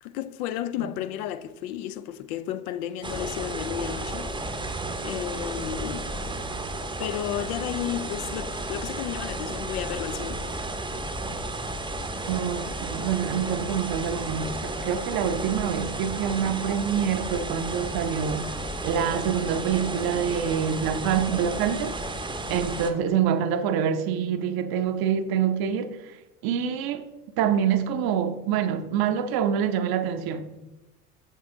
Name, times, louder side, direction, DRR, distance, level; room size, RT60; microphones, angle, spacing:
voice 1, 0.0-4.3 5.0-6.1 6.7-10.5, left 11 dB, 65° left, 0.6 m, -33 dB
sound 1, 3.0-22.9, right 2 dB, 10° right, 0.8 m, -33 dB
voice 2, 12.3-18.5 18.8-26.2 26.4-27.1 27.4-30.6, right 8 dB, 50° right, 0.8 m, -26 dB
6.8 x 6.5 x 3.8 m
hypercardioid pair, 70°, 47 cm